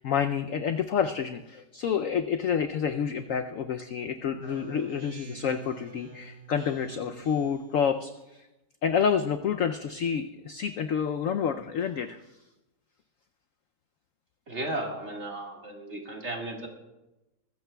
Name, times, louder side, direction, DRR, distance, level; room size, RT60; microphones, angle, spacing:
voice 1, 0.0-8.5 8.8-12.2, left 7 dB, 70° left, 8 dB, 0.8 m, -28 dB
Speech synthesizer, 4.4-7.7, right 3 dB, 70° right, 2.8 m, -47 dB
voice 2, 14.5-16.7, right 2 dB, 40° right, 0 dB, 2.1 m, -35 dB
20.5 x 15.0 x 2.3 m, 1.0 s
omnidirectional pair, 1.9 m